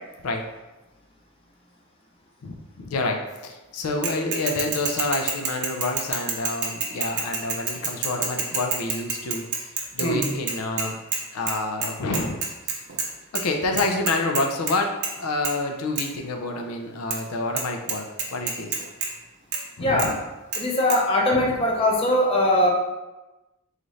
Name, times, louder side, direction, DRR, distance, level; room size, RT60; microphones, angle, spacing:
voice 1, 2.4-11.0 11.3-12.4 12.7-12.8 13.3-18.1 18.3-18.8 19.8-20.2 21.3-21.6, left 2 dB, 80° left, 3 dB, 0.4 m, -28 dB
Bicycle / Mechanisms, 4.0-11.2 11.5-11.6 11.8-13.1 13.3-13.4 13.8-14.7 15.0-15.2 15.4-15.5 16.0-16.1 17.1-17.2 17.6-17.7 17.9-19.1 19.5-19.6 20.0-20.1 20.5-20.6 20.9-21.0, right 5 dB, 50° right, 0.6 m, -27 dB
voice 2, 19.8-20.1 20.6-22.7, left 1 dB, 25° left, -1 dB, 0.5 m, -21 dB
3.9 x 2.4 x 3.1 m, 1.1 s
head